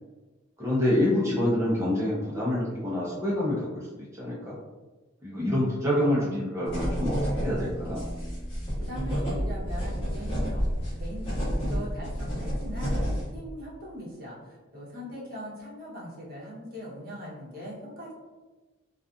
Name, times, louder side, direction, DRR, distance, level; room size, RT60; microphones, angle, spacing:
voice 1, 0.6-3.9 4.1-4.6 5.2-8.0, left 1 dB, 15° right, -7 dB, 0.7 m, -27 dB
sound 1, 6.7-13.3, equal, 25° left, 1.0 m, -30 dB
voice 2, 8.8-10.6 11.0-18.1, equal, 45° right, -5 dB, 0.9 m, -40 dB
2.4 x 2.4 x 2.4 m, 1.2 s
head